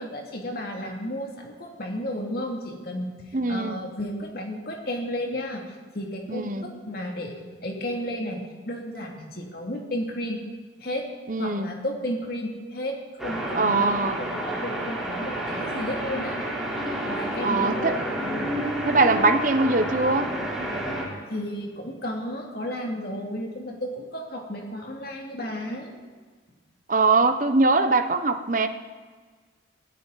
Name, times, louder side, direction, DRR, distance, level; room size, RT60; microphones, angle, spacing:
voice 1, 0.0-5.7 5.9-10.4 10.8-11.1 11.4-13.8 14.2-16.4 17.1-18.6 21.3-26.0, equal, 50° left, 1 dB, 2.7 m, -33 dB
voice 2, 3.3-3.8 6.3-6.7 11.3-11.7 13.5-14.2 17.4-18.0 18.9-20.3 26.9-28.7, right 3 dB, 45° right, 8 dB, 1.0 m, -22 dB
sound 1, 13.2-21.0, right 1 dB, ahead, 3.7 m, -30 dB
22.5 x 15.5 x 4.1 m, 1.5 s
head